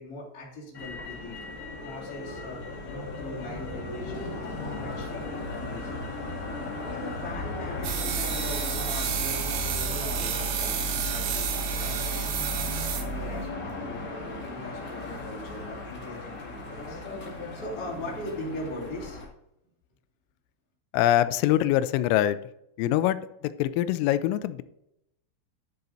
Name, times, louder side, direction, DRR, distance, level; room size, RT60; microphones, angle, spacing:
voice 1, 0.0-1.4 1.8-6.0 6.4-6.5 6.8-12.4 12.7-17.0 17.5-19.2, left 1 dB, 20° left, -10 dB, 3.4 m, -40 dB
Motor vehicle (road), 0.7-19.2, left 2 dB, 40° left, 1.1 m, -37 dB
sound 1, 7.8-13.5, right 7 dB, 85° right, 3.8 m, -30 dB
voice 2, 20.9-22.4 22.8-23.2 23.6-24.6, left 13 dB, 90° left, 14 dB, 3.2 m, -23 dB
11.5 x 6.8 x 4.0 m, 0.83 s
omnidirectional pair, 5.7 m